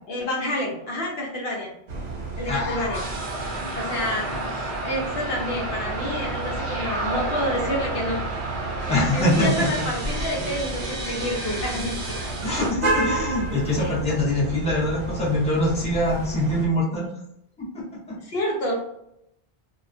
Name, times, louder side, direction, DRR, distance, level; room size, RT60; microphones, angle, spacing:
voice 1, 0.1-1.7 2.4-3.0 3.7-8.2 8.8-12.2 13.8-13.9 18.2-18.7, equal, 70° left, -1 dB, 0.8 m, -29 dB
sound 1, 1.9-16.7, right 2 dB, 50° right, 0.6 m, -32 dB
voice 2, 2.5-3.1 3.4-3.9 8.9-9.8 12.4-17.1 17.6-18.1, left 1 dB, 5° left, -7 dB, 0.7 m, -24 dB
sound 2, 2.9-12.7, right 2 dB, 85° right, 1.0 m, -31 dB
2.3 x 2.1 x 2.4 m, 0.79 s
omnidirectional pair, 1.1 m